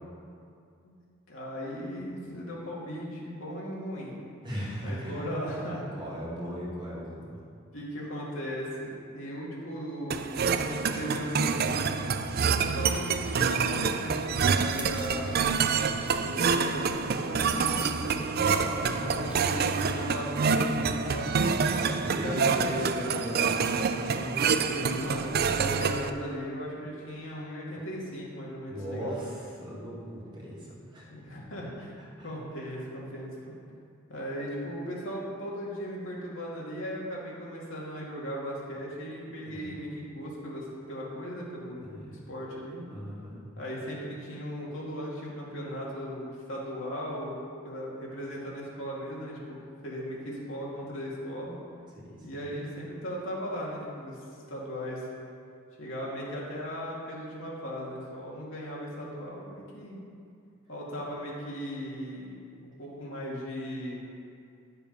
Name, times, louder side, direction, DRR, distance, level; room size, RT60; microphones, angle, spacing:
voice 1, 1.3-4.2 4.8-5.9 7.7-11.8 12.5-15.5 16.2-21.3 22.0-22.7 24.5-29.2 31.1-31.9 32.2-33.5 34.1-42.8 43.6-49.6 49.8-51.6 52.2-54.2 54.5-55.1 55.8-60.0 60.7-64.0, equal, 65° left, -5 dB, 2.5 m, -37 dB
voice 2, 4.4-5.3 5.9-7.4 18.9-19.4 21.6-25.1 28.7-31.1 32.2-32.7 39.5-39.8 41.8-42.2 42.9-43.5 51.9-52.5, equal, 20° right, -6 dB, 2.2 m, -38 dB
sound 1, 10.1-26.1, right 5 dB, 50° right, 0.4 m, -27 dB
sound 2, 12.8-20.1, right 1 dB, 5° right, 0.9 m, -47 dB
11.0 x 7.0 x 5.4 m, 2.4 s
head